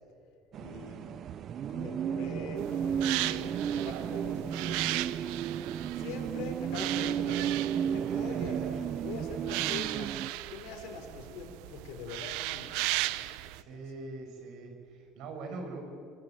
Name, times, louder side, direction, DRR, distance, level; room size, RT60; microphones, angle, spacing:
voice 1, 0.5-1.2 1.6-5.1 5.9-8.6 9.0-10.1 10.5-13.8, left 5 dB, 75° left, 3 dB, 5.1 m, -44 dB
sound 1, 0.5-10.3, right 9 dB, 35° right, 0.6 m, -33 dB
sound 2, 2.6-13.6, right 18 dB, 80° right, 0.8 m, -37 dB
voice 2, 3.7-4.4 8.0-8.8 13.6-15.8, right 3 dB, 55° right, 4 dB, 6.0 m, -43 dB
25.5 x 24.5 x 9.1 m, 2.4 s
cardioid pair, 170°, 0 cm